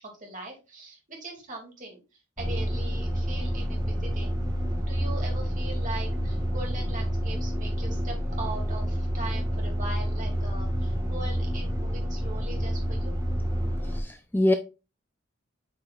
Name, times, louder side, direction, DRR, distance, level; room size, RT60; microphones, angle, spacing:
voice 1, 0.2-2.0 2.4-4.3 4.8-13.2, right 2 dB, 40° right, 2.4 m, -40 dB
sound 1, 2.4-14.0, equal, 15° right, 1.1 m, -29 dB
voice 2, 13.8-14.5, left 1 dB, 10° left, 0.3 m, -24 dB
8.5 x 4.7 x 2.4 m
head